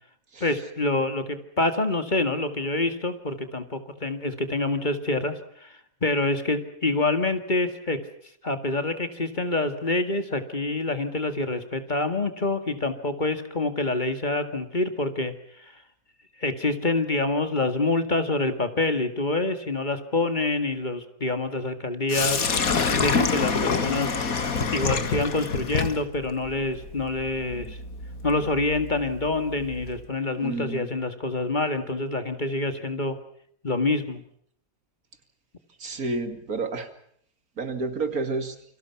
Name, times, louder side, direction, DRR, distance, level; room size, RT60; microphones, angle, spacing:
voice 1, 0.4-8.0 8.4-15.3 16.4-22.5 23.0-24.3 24.7-27.8 28.2-33.2 33.6-34.2, left 2 dB, 35° left, 8 dB, 2.1 m, -26 dB
Sink (filling or washing), 22.1-30.0, left 5 dB, 75° left, 2.3 m, -27 dB
voice 2, 30.4-30.8 35.8-36.9 37.6-38.5, right 3 dB, 85° right, 8 dB, 2.9 m, -30 dB
29.0 x 24.5 x 5.9 m, 0.66 s
omnidirectional pair, 1.5 m